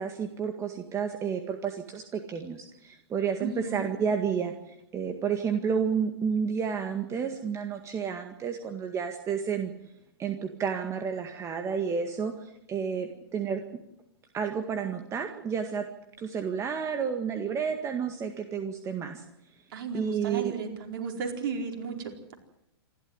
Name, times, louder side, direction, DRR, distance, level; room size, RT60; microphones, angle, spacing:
voice 1, 0.0-4.5 4.9-9.7 10.2-13.6 14.3-15.9 16.2-19.2 19.9-20.5, right 6 dB, 20° right, 6 dB, 1.9 m, -31 dB
voice 2, 3.4-3.9 19.7-22.3, right 5 dB, 55° right, 3 dB, 4.6 m, -34 dB
28.0 x 12.5 x 9.8 m, 0.83 s
figure-of-eight pair, 110°, 14 cm